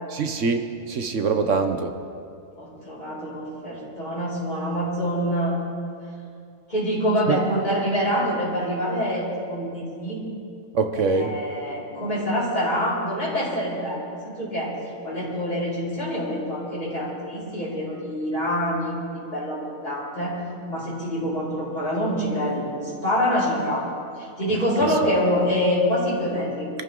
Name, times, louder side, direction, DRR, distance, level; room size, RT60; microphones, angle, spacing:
voice 1, 0.1-1.9 7.3-7.4 10.7-11.4, right 4 dB, 60° right, 7 dB, 1.2 m, -23 dB
voice 2, 2.6-5.6 6.7-10.2 11.1-14.7 15.0-18.9 19.3-20.4 20.7-23.8 24.2-26.7, equal, 30° left, -9 dB, 5.5 m, -26 dB
24.0 x 14.5 x 3.8 m, 2.5 s
omnidirectional pair, 1.5 m